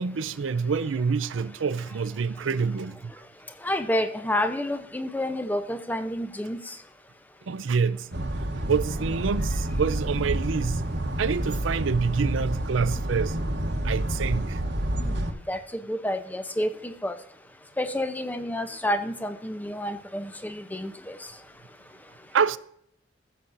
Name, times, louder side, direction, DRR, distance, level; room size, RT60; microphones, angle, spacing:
voice 1, 0.0-3.1 7.5-8.1 8.7-10.9 11.2-13.4 13.8-14.6 22.3-22.6, right 5 dB, 85° right, 0.5 m, -27 dB
voice 2, 3.6-6.6 15.0-15.2 15.5-17.2 17.8-21.2, left 1 dB, 10° left, 0.6 m, -29 dB
sound 1, 8.1-15.3, right 1 dB, 60° right, 1.1 m, -29 dB
15.5 x 7.3 x 2.6 m
head